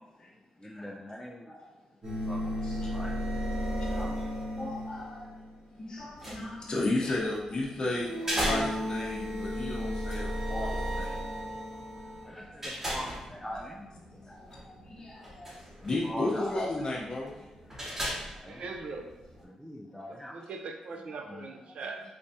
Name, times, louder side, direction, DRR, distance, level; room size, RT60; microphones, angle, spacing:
voice 1, 0.6-1.5 2.2-2.5 2.9-3.1 3.9-4.3 8.2-8.4 12.2-14.3 16.0-16.7 18.3-18.7 19.4-20.4 21.1-21.4, equal, 5° left, -2 dB, 0.4 m, -42 dB
sound 1, 2.0-5.5 7.8-12.3, equal, 50° right, 1.4 m, -34 dB
voice 2, 2.4-2.9 3.8-3.9 4.5-5.3 5.7-11.2 11.7-12.6 14.1-17.7 19.9-20.0 21.3-21.4 21.7-21.8, left 2 dB, 35° left, -5 dB, 0.7 m, -35 dB
sound 2, 6.0-19.4, equal, 20° right, 1.0 m, -40 dB
voice 3, 18.5-19.1 20.1-22.0, right 4 dB, 65° right, 4 dB, 0.5 m, -40 dB
3.3 x 3.2 x 2.7 m, 1.1 s
cardioid pair, 95°, 2 cm